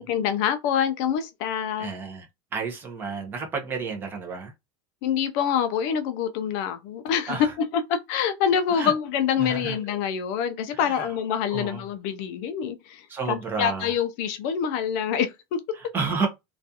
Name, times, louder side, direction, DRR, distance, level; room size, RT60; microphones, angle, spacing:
voice 1, 0.1-1.9 5.0-7.4 7.7-15.6, left 8 dB, 45° left, 0.4 m, -26 dB
voice 2, 1.8-4.5 7.3-7.5 8.7-8.9 9.4-9.8 10.7-11.1 11.5-11.8 13.1-13.9 15.7-16.3, right 4 dB, 15° right, 0.5 m, -31 dB
2.4 x 2.3 x 2.6 m
supercardioid pair, 175°, 12 cm